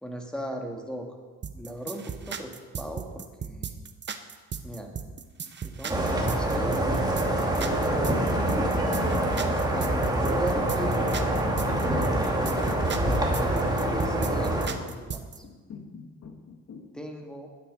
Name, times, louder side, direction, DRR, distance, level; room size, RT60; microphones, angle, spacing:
voice 1, 0.0-1.1 1.5-3.8 4.6-4.9 5.4-6.8 7.6-11.0 11.9-15.4 16.9-17.5, equal, 5° left, 2 dB, 2.0 m, -38 dB
sound 1, 1.4-15.4, right 7 dB, 35° right, 0.9 m, -36 dB
sound 2, 5.9-14.7, right 1 dB, 15° right, 2.3 m, -25 dB
voice 2, 11.7-12.2 14.4-14.5 15.4-16.9, left 7 dB, 60° left, 5 dB, 1.7 m, -42 dB
11.5 x 9.5 x 5.4 m, 1.4 s
cardioid pair, 90°, 30 cm